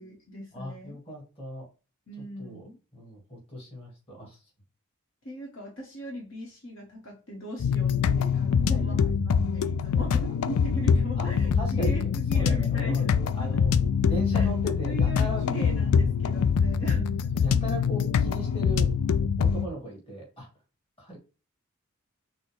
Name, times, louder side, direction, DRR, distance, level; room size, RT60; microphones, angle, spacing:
voice 1, 0.0-1.0 2.1-2.8 5.2-13.1 13.4-13.8 14.3-14.5 14.8-17.1 17.5-17.6, right 1 dB, 60° left, -1 dB, 1.2 m, -39 dB
voice 2, 0.5-1.7 2.4-2.6 2.9-4.4 8.6-9.0 9.9-10.2 11.2-11.3 11.5-13.8 14.0-15.4 16.8-17.0 17.3-18.9 19.4-20.5 21.0-21.2, equal, 25° left, -1 dB, 1.7 m, -38 dB
sound 1, 7.6-19.7, left 6 dB, 90° left, 0.4 m, -24 dB
6.2 x 2.1 x 3.2 m, 0.33 s
head